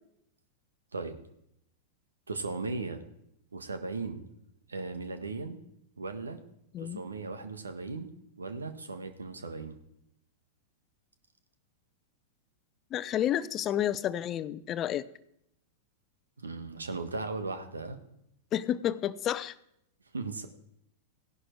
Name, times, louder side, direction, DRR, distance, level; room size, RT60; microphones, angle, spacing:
voice 1, 2.3-3.0 3.5-4.3 4.7-5.6 6.0-6.4 6.8-8.1 8.4-9.8 16.4-18.0 20.1-20.5, right 3 dB, 85° right, 8 dB, 1.5 m, -37 dB
voice 2, 12.9-15.0 18.5-19.5, left 11 dB, 30° left, 16 dB, 0.6 m, -30 dB
16.5 x 11.5 x 4.6 m, 0.77 s
figure-of-eight pair, 100°, 0 cm